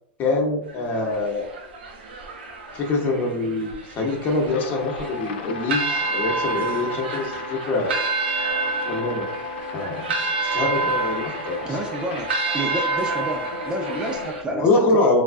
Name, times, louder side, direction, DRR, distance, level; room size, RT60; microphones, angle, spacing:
voice 1, 0.2-1.5 2.7-5.8 6.1-8.1 8.8-9.3 9.7-10.0 10.5-11.6 14.5-15.2, left 2 dB, 35° left, 1 dB, 0.8 m, -24 dB
sound 1, 0.7-14.4, right 3 dB, 85° right, 0.6 m, -29 dB
sound 2, 4.4-14.3, left 7 dB, 80° left, 0.4 m, -36 dB
voice 2, 11.6-15.0, right 1 dB, 15° right, 1 dB, 0.4 m, -30 dB
3.4 x 2.2 x 2.5 m, 0.73 s
hypercardioid pair, 120°, 5 cm